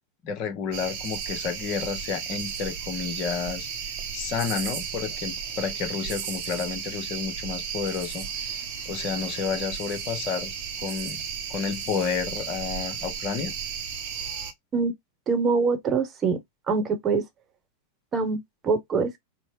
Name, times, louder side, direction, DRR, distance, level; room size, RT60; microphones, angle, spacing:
voice 1, 0.2-3.7 4.1-8.6 8.9-10.5 10.8-11.2 11.5-13.5, left 6 dB, 40° left, 0.8 m, -31 dB
sound 1, 0.7-14.5, right 7 dB, 50° right, 0.7 m, -34 dB
voice 2, 15.3-16.4 16.7-17.2 18.1-19.2, right 4 dB, 25° right, 1.0 m, -24 dB
4.1 x 2.0 x 3.3 m
figure-of-eight pair, 90°, 0 cm